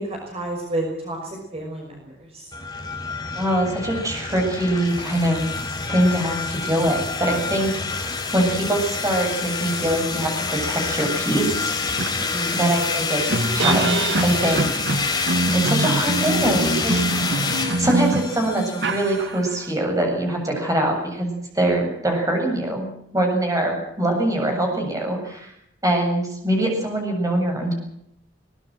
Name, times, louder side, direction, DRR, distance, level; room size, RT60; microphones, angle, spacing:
voice 1, 0.0-2.6 12.3-12.7, right 1 dB, 35° right, 0 dB, 5.9 m, -31 dB
sound 1, 2.5-19.3, left 4 dB, 20° left, 4.1 m, -27 dB
voice 2, 3.3-5.4 5.9-11.7 12.5-14.8 15.5-25.5 25.8-27.7, right 1 dB, 20° right, 1 dB, 7.8 m, -23 dB
sound 2, 11.2-11.3 11.6-19.7, right 2 dB, 75° right, 1.7 m, -25 dB
22.5 x 19.5 x 7.7 m, 0.77 s
head